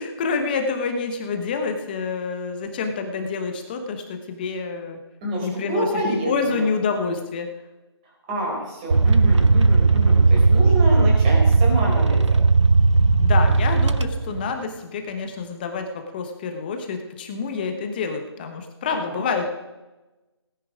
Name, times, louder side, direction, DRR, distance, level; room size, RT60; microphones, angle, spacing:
voice 1, 0.0-5.0 5.4-7.5 13.2-19.5, left 4 dB, 20° left, 6 dB, 1.0 m, -27 dB
voice 2, 5.2-6.6 8.3-12.4 18.9-19.2, right 1 dB, 20° right, -2 dB, 4.3 m, -27 dB
sound 1, 8.9-14.5, right 3 dB, 80° right, 0.8 m, -17 dB
18.0 x 10.0 x 5.0 m, 1.1 s
figure-of-eight pair, 160°, 15 cm